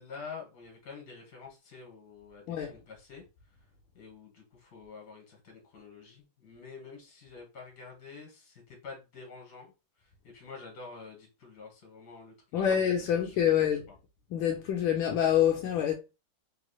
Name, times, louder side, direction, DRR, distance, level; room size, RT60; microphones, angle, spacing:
voice 1, 0.0-3.2 3.9-9.7 10.0-13.4, left 4 dB, 50° left, 1.6 m, -48 dB
voice 2, 12.5-13.9 14.3-15.9, left 9 dB, 80° left, 1.3 m, -26 dB
3.5 x 3.1 x 2.3 m
omnidirectional pair, 2.1 m